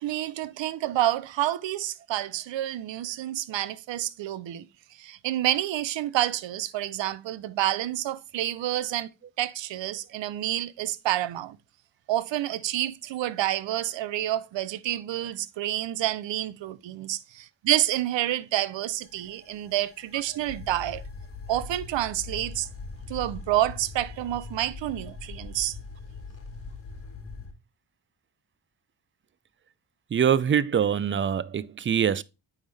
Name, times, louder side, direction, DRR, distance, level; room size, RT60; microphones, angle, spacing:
voice 1, 0.0-4.7 5.0-9.1 9.4-11.6 12.1-21.0 21.5-22.7 23.1-25.7, right 13 dB, 80° right, 0.6 m, -28 dB
sound 1, 19.0-27.5, left 4 dB, 30° left, 1.5 m, -41 dB
voice 2, 30.1-32.2, right 8 dB, 30° right, 0.3 m, -24 dB
9.3 x 3.6 x 3.3 m
cardioid pair, 100°, 44 cm